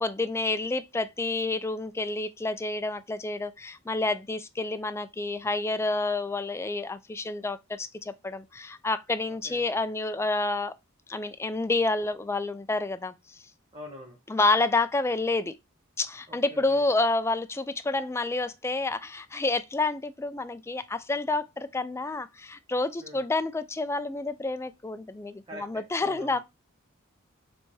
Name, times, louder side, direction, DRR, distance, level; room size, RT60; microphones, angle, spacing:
voice 1, 0.0-10.7 11.1-13.4 14.3-15.5 16.0-26.4, left 2 dB, 10° left, 0.3 m, -29 dB
voice 2, 9.3-9.6 13.7-14.2 16.3-16.8 23.0-23.2 25.5-26.4, left 1 dB, 25° right, 1.1 m, -45 dB
4.0 x 3.4 x 3.2 m
head